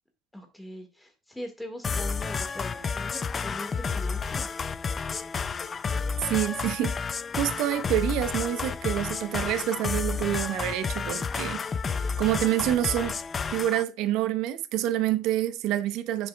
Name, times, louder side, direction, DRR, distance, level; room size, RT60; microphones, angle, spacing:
voice 1, 0.3-4.5, equal, 5° left, 1.6 m, -41 dB
sound 1, 1.8-13.8, left 5 dB, 20° left, 0.3 m, -31 dB
voice 2, 6.2-7.0 7.4-11.6 12.2-13.2 13.5-16.3, right 12 dB, 70° right, 0.7 m, -27 dB
7.4 x 6.5 x 2.2 m
cardioid pair, 165°, 0 cm